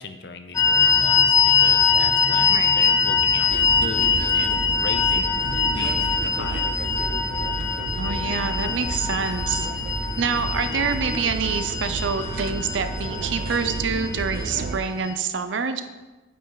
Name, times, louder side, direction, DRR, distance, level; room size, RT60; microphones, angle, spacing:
voice 1, 0.0-3.5 3.8-6.7, left 4 dB, 60° left, 8 dB, 0.7 m, -36 dB
sound 1, 0.5-15.1, left 6 dB, 20° left, 0.4 m, -23 dB
voice 2, 2.4-2.8 8.0-9.7 10.2-15.8, right 5 dB, 85° right, 9 dB, 0.6 m, -26 dB
sound 2, 3.5-14.8, right 4 dB, 50° right, 0.3 m, -32 dB
9.0 x 5.4 x 4.0 m, 1.2 s
head